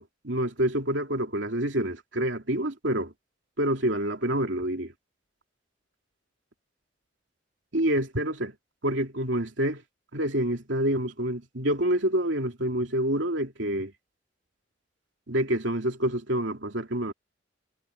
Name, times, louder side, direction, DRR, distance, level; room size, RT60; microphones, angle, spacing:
voice 1, 0.0-3.1 3.6-4.9 7.7-8.5 8.8-9.8 10.1-13.9 15.3-17.1, right 1 dB, 70° right, 2.8 m, -27 dB
head